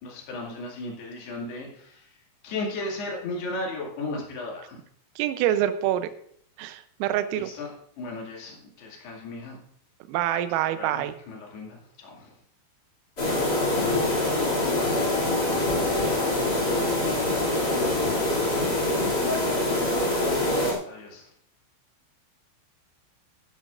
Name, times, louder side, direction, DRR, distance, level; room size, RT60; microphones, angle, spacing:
voice 1, 0.0-2.2 2.4-4.8 7.4-9.6 10.7-12.4 20.9-21.3, left 2 dB, 60° left, -1 dB, 4.0 m, -36 dB
voice 2, 5.2-6.1 6.6-7.5 10.1-11.1, right 12 dB, 85° right, 10 dB, 3.4 m, -26 dB
sound 1, 13.2-20.7, left 2 dB, 30° left, 1.9 m, -24 dB
15.0 x 11.0 x 2.5 m, 0.64 s
omnidirectional pair, 5.9 m